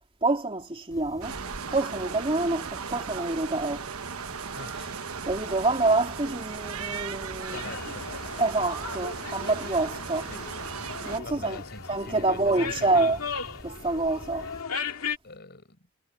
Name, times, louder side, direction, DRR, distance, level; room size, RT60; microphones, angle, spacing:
voice 1, 0.2-1.4 1.7-3.9 5.3-7.7 8.4-10.3 11.1-11.6 11.9-13.2 13.6-14.5, right 2 dB, 25° right, 3.6 m, -27 dB
sound 1, 0.9-14.6, equal, 15° left, 7.4 m, -47 dB
sound 2, 1.2-11.2, right 6 dB, 80° right, 1.2 m, -37 dB
voice 2, 4.6-5.0 6.9-7.1 7.5-8.1 10.3-10.5 11.2-13.2 15.2-15.8, left 2 dB, 50° left, 6.3 m, -43 dB
sound 3, 7.5-15.2, left 5 dB, 70° left, 2.6 m, -37 dB
head